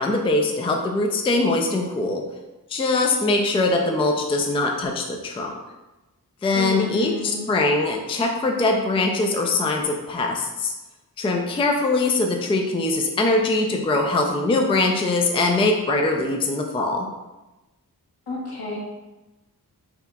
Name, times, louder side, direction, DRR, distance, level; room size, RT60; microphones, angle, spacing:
voice 1, 0.0-2.2 2.7-5.5 6.4-7.1 7.5-10.7 11.2-17.1, left 2 dB, 15° left, 2 dB, 0.3 m, -22 dB
voice 2, 6.5-7.5 18.3-18.8, left 1 dB, 80° left, -4 dB, 1.2 m, -29 dB
5.6 x 2.9 x 2.2 m, 1.1 s
wide cardioid pair, 135°, 37 cm